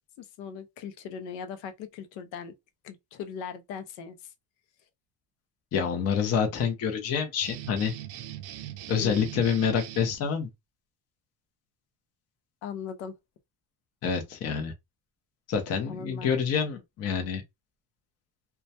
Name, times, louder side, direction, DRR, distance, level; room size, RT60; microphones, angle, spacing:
voice 1, 0.2-2.5 2.8-4.3 9.0-9.2 12.6-13.1 15.9-16.3, left 6 dB, 80° left, 0.6 m, -39 dB
voice 2, 5.7-7.9 8.9-10.5 14.0-14.7 15.5-17.4, left 7 dB, 35° left, 0.5 m, -27 dB
sound 1, 7.4-10.2, right 12 dB, 70° right, 0.5 m, -40 dB
2.2 x 2.1 x 2.6 m
cardioid pair, 160°, 44 cm